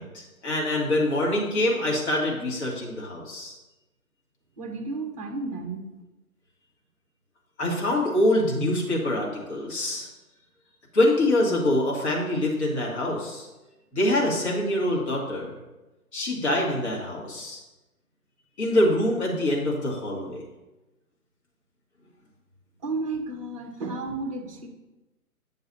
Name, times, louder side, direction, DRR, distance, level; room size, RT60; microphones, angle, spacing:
voice 1, 0.0-3.6 7.6-10.1 10.9-13.5 13.9-15.5 16.1-17.6 18.6-20.4, left 1 dB, 45° left, -3 dB, 2.4 m, -25 dB
voice 2, 4.6-5.8 22.8-24.7, right 3 dB, 20° right, 3 dB, 0.7 m, -32 dB
9.3 x 6.9 x 2.8 m, 1.1 s
figure-of-eight pair, 145°, 46 cm